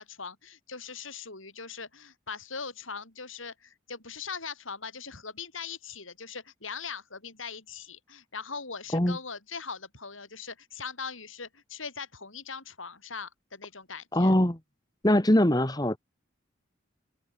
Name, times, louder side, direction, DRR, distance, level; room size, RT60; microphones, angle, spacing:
voice 1, 0.0-14.3, left 5 dB, 85° left, 7.1 m, -40 dB
voice 2, 14.1-14.6 15.0-16.0, left 1 dB, 20° left, 1.7 m, -22 dB
open air
head